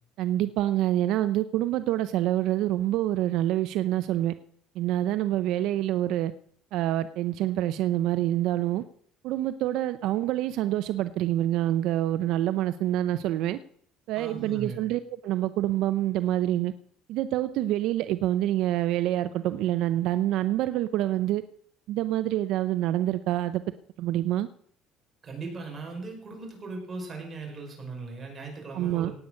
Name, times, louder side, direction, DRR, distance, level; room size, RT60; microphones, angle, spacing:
voice 1, 0.2-4.3 4.8-6.3 6.7-8.8 9.2-13.6 14.1-16.7 17.1-21.4 21.9-23.6 24.0-24.5 28.7-29.1, right 13 dB, 65° right, 13 dB, 0.5 m, -26 dB
voice 2, 14.2-14.8 25.2-29.1, right 3 dB, 25° right, 1 dB, 5.3 m, -38 dB
17.5 x 8.4 x 6.5 m, 0.65 s
cardioid pair, 135°, 0 cm